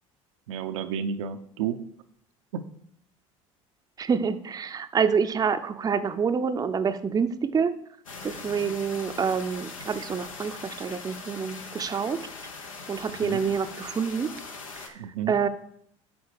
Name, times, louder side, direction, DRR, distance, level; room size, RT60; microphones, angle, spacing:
voice 1, 0.5-1.8 2.5-2.6 13.1-13.4 14.9-15.4, right 7 dB, 70° right, 7 dB, 0.6 m, -31 dB
voice 2, 4.0-7.7 8.2-12.2 12.9-14.3 15.3-15.5, right 6 dB, 20° right, 9 dB, 0.6 m, -27 dB
sound 1, 8.1-14.9, left 4 dB, 80° left, 1.0 m, -41 dB
9.4 x 4.1 x 4.7 m, 0.69 s
hypercardioid pair, 70°, 17 cm